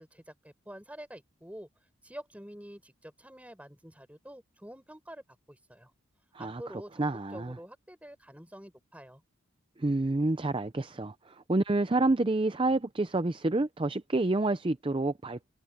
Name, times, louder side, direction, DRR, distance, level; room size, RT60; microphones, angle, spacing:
voice 1, 0.0-1.7 2.0-5.9 6.4-9.2, equal, 5° right, 5.3 m, -47 dB
voice 2, 7.0-7.6 9.8-15.4, right 2 dB, 25° right, 0.5 m, -28 dB
head